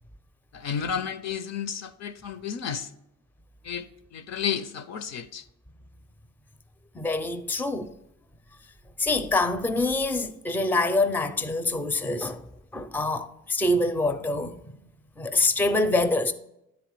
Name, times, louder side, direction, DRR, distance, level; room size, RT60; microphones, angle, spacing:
voice 1, 0.5-2.9 3.6-5.4, left 7 dB, 55° left, 0.6 m, -32 dB
voice 2, 6.9-7.9 9.0-12.4 12.7-14.6 15.2-16.3, left 2 dB, 5° left, 0.5 m, -25 dB
9.6 x 4.1 x 4.6 m
supercardioid pair, 65°, 32 cm